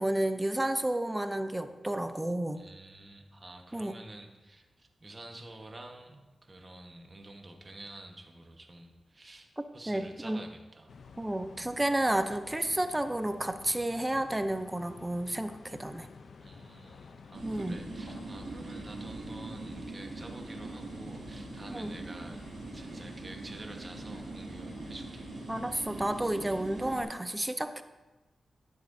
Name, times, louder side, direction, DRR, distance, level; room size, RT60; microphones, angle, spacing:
voice 1, 0.0-2.6 3.7-3.9 9.9-10.4 11.2-16.1 17.4-17.8 21.7-21.9 25.5-27.8, right 1 dB, 15° right, 10 dB, 0.5 m, -31 dB
voice 2, 2.5-9.5 9.7-11.0 16.4-22.4 22.7-25.3, right 2 dB, 35° right, 3 dB, 1.2 m, -49 dB
sound 1, 10.9-26.8, left 5 dB, 75° left, 0.6 m, -52 dB
sound 2, 17.3-27.0, right 3 dB, 85° right, 2.4 m, -42 dB
13.0 x 7.5 x 2.7 m, 1.1 s
cardioid pair, 65°, 0 cm